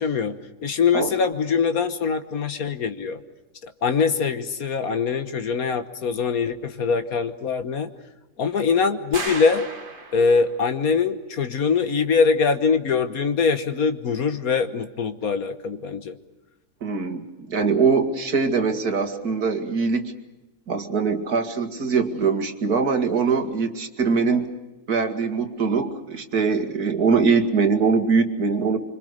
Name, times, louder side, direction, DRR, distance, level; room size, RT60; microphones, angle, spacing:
voice 1, 0.0-3.2 3.6-7.9 8.4-9.7 10.1-16.2, left 5 dB, 70° left, 9 dB, 1.7 m, -23 dB
sound 1, 9.1-10.6, right 3 dB, 35° right, 1.8 m, -34 dB
voice 2, 16.8-20.1 20.7-24.5 24.9-28.8, right 5 dB, 75° right, 6 dB, 2.6 m, -22 dB
26.0 x 25.5 x 6.5 m, 1.0 s
omnidirectional pair, 1.6 m